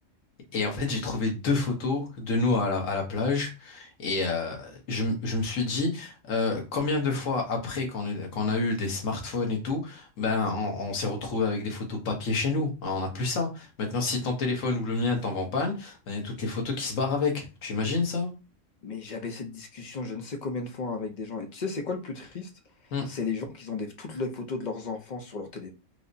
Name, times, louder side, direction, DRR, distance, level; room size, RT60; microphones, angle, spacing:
voice 1, 0.5-18.3 22.9-23.0, left 3 dB, 85° left, 2 dB, 1.3 m, -28 dB
voice 2, 18.8-22.5 23.1-25.7, left 4 dB, 45° left, 4 dB, 0.6 m, -34 dB
4.7 x 2.0 x 2.6 m, 0.29 s
omnidirectional pair, 1.3 m